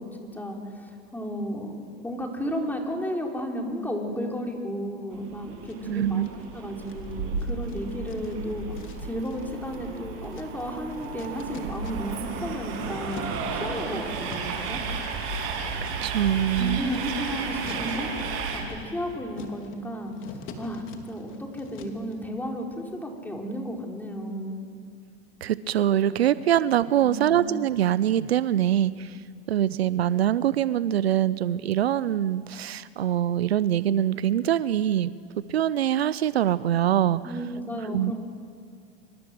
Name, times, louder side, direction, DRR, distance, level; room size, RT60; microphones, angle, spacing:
voice 1, 0.0-6.2 6.5-8.7 9.0-14.8 16.6-18.1 18.5-24.6 26.2-26.4 27.0-27.4 37.2-38.1, equal, 5° left, 1 dB, 4.7 m, -33 dB
Train, 5.1-18.6, right 4 dB, 50° right, 7.2 m, -33 dB
sound 1, 5.6-6.4 6.8-12.3 12.6-22.1, left 4 dB, 40° left, 3.2 m, -46 dB
voice 2, 5.9-6.3 15.8-16.8 25.4-29.2 29.5-35.1 35.4-37.2 37.8-38.1, right 11 dB, 80° right, 17 dB, 0.8 m, -24 dB
26.0 x 24.5 x 7.9 m, 2.2 s
hypercardioid pair, 110°, 31 cm